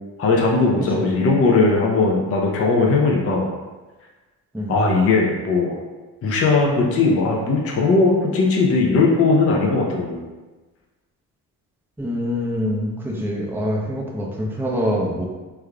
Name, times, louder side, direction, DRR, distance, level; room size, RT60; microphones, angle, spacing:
voice 1, 0.2-3.5 4.7-5.8 6.2-10.2, left 3 dB, 30° left, -1 dB, 0.7 m, -18 dB
voice 2, 12.0-15.2, equal, 5° right, -2 dB, 0.7 m, -25 dB
3.4 x 3.4 x 2.3 m, 1.2 s
hypercardioid pair, 60°, 49 cm